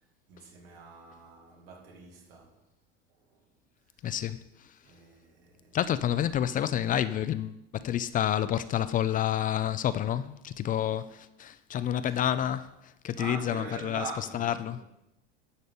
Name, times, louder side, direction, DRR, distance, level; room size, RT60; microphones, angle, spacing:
voice 1, 0.3-2.6 4.8-5.8 12.2-12.5 13.2-14.9, right 4 dB, 85° right, 2.2 m, -43 dB
voice 2, 4.0-4.4 5.7-12.7 13.0-14.0 14.3-14.8, left 10 dB, 30° left, 0.4 m, -29 dB
11.0 x 4.0 x 6.9 m
supercardioid pair, 115°, 30 cm